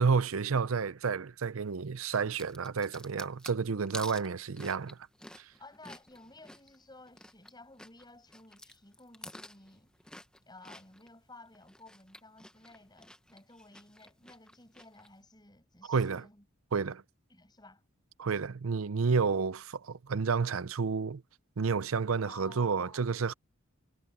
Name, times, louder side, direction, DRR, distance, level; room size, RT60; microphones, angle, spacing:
voice 1, 0.0-5.0 5.4-5.5 15.9-16.2 16.7-17.0 18.2-21.2 21.6-23.3, right 5 dB, 80° right, 0.6 m, -30 dB
sound 1, 2.0-7.5 7.8-11.1 11.5-15.1, left 1 dB, 5° left, 0.9 m, -49 dB
voice 2, 5.6-9.9 10.5-16.5 17.3-17.8 22.2-23.0, left 2 dB, 20° left, 6.5 m, -54 dB
head